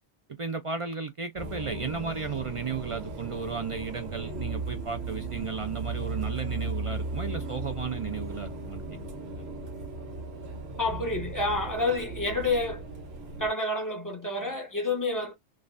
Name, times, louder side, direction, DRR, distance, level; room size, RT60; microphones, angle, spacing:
voice 1, 0.3-8.8 9.3-9.5, right 5 dB, 50° right, 0.4 m, -34 dB
sound 1, 1.4-13.5, right 2 dB, 70° right, 1.2 m, -36 dB
voice 2, 10.8-12.8 13.4-15.4, left 2 dB, 20° left, 1.1 m, -29 dB
3.1 x 2.4 x 2.4 m
omnidirectional pair, 1.1 m